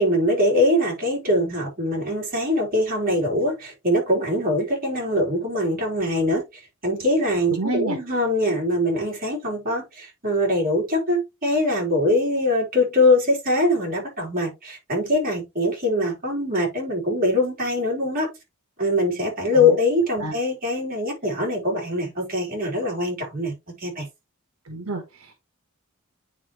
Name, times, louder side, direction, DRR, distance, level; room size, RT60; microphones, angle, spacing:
voice 1, 0.0-18.3 18.8-24.1, left 1 dB, 45° right, 3.8 m, -23 dB
voice 2, 7.5-8.0 19.5-19.8 20.2-20.3 24.6-25.3, right 2 dB, 75° right, 1.5 m, -29 dB
9.0 x 4.5 x 3.1 m
head